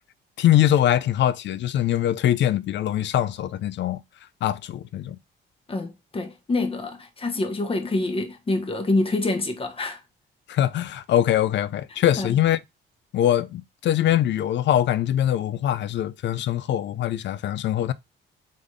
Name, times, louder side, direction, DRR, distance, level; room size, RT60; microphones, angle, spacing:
voice 1, 0.4-4.0 4.4-5.2 10.5-12.6 13.1-17.9, left 11 dB, 65° left, 0.5 m, -22 dB
voice 2, 5.7-10.0 12.2-12.4, left 2 dB, 30° left, 1.2 m, -26 dB
3.9 x 3.7 x 3.2 m
cardioid pair, 90°, 20 cm